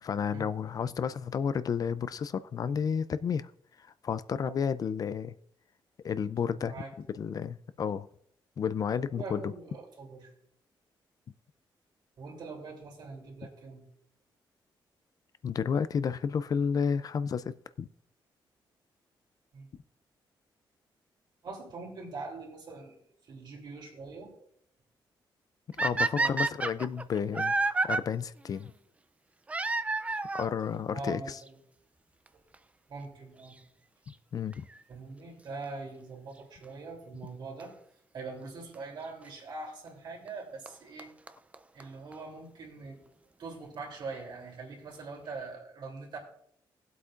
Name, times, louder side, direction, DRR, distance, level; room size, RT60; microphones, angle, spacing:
voice 1, 0.0-3.5 3.8-5.3 6.0-6.7 7.1-8.1 8.6-9.5 15.4-17.9 25.8-27.6 27.8-28.7 30.3-31.4 34.3-34.7, left 7 dB, 45° left, 0.4 m, -31 dB
voice 2, 6.5-6.9 9.2-10.3 12.2-13.8 19.5-19.7 21.4-23.0 23.3-24.3 26.2-26.5 30.9-31.6 32.9-33.5 34.9-37.7 38.1-41.1 41.7-43.0 43.4-46.2, right 3 dB, 60° right, 3.2 m, -42 dB
sound 1, 25.8-28.0 29.5-30.5 31.5-31.6 32.3-32.4 32.5-32.6 34.5-34.8 37.6-37.7 38.7-38.8 40.3-40.4 40.7-40.8 41.0-41.1 41.3-41.4 41.5-41.6 41.8-41.9 42.1-42.2, right 3 dB, 15° right, 0.4 m, -29 dB
18.0 x 8.1 x 2.5 m
cardioid pair, 130°, 9 cm